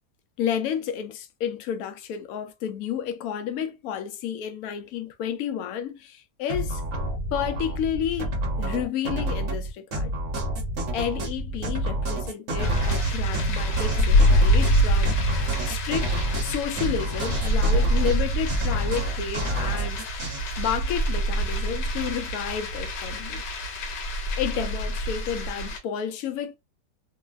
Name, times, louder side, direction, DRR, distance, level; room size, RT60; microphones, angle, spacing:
voice 1, 0.4-6.8 7.3-10.1 10.9-16.1 16.4-23.4 24.4-26.6, left 9 dB, 70° left, 0.9 m, -31 dB
sound 1, 6.5-20.8, right 1 dB, 55° right, 1.0 m, -29 dB
sound 2, 12.6-25.8, equal, 90° left, 1.4 m, -25 dB
3.1 x 2.1 x 2.4 m
omnidirectional pair, 1.8 m